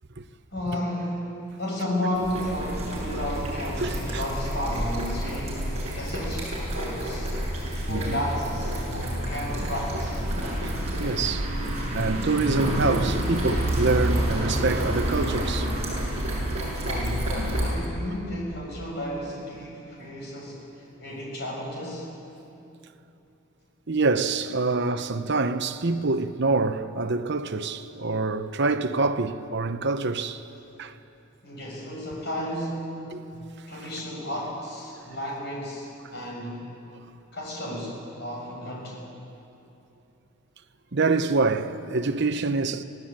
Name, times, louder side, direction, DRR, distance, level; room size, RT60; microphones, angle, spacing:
voice 1, 0.5-5.7 6.0-7.3 7.8-10.3 11.6-11.7 16.8-22.2 31.4-33.2 33.7-36.7 37.3-39.1, left 1 dB, 50° left, 7.0 m, -33 dB
sound 1, 2.1-17.7, right 1 dB, 30° right, 7.7 m, -28 dB
voice 2, 3.8-4.2 7.9-8.2 10.6-11.5 11.9-15.7 16.4-16.5 23.9-30.4 30.8-30.9 33.1-33.2 33.7-33.8 40.9-42.8, right 3 dB, 55° right, 0.9 m, -26 dB
25.5 x 17.5 x 8.9 m
head